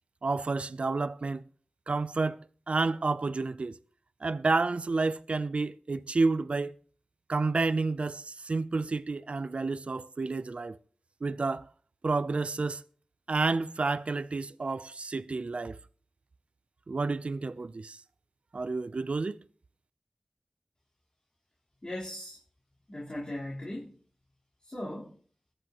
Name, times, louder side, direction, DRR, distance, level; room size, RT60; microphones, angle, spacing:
voice 1, 0.2-1.4 1.9-3.8 4.2-6.7 7.3-10.8 11.2-11.7 12.0-12.8 13.3-15.8 16.9-18.0 18.5-19.4, right 3 dB, 75° right, 0.5 m, -30 dB
voice 2, 21.8-22.4 22.9-23.9 24.6-25.2, left 1 dB, 40° left, 4.0 m, -38 dB
22.0 x 10.0 x 3.0 m
wide cardioid pair, 60°, 2 cm